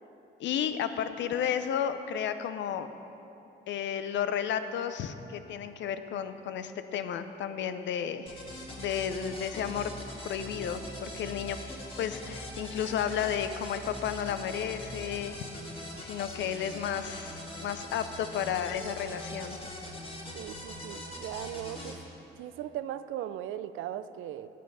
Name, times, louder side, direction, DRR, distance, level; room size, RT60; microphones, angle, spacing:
voice 1, 0.4-2.9 3.7-8.4 8.8-9.9 10.2-11.6 12.0-15.5 16.0-19.6, left 8 dB, 70° left, 11 dB, 0.5 m, -32 dB
sound 1, 8.3-22.0, left 1 dB, 25° left, 1.6 m, -42 dB
voice 2, 20.3-22.0 22.4-24.5, right 11 dB, 80° right, 13 dB, 0.4 m, -38 dB
8.4 x 7.4 x 5.5 m, 2.9 s
cardioid pair, 90°, 20 cm